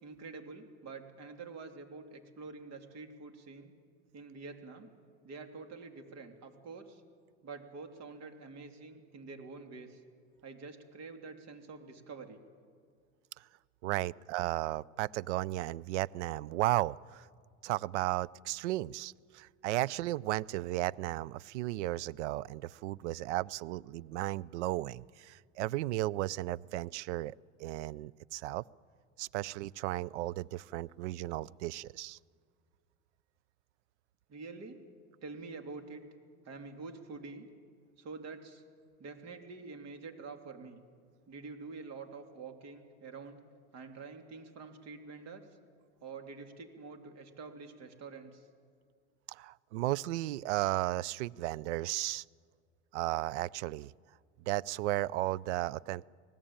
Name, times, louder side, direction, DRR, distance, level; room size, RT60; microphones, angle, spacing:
voice 1, 0.0-3.7 4.1-4.9 5.2-7.0 7.4-10.0 10.4-12.4 34.3-34.8 35.2-36.0 36.4-37.5 38.0-38.6 39.0-40.8 41.3-43.4 43.7-45.5 46.0-48.5, right 4 dB, 50° right, 6 dB, 3.2 m, -47 dB
voice 2, 13.8-17.3 17.6-28.6 29.2-32.2 49.3-52.2 52.9-53.9 54.5-56.0, right 16 dB, 85° right, 23 dB, 0.5 m, -34 dB
25.0 x 18.0 x 8.8 m, 2.1 s
hypercardioid pair, 85°, 34 cm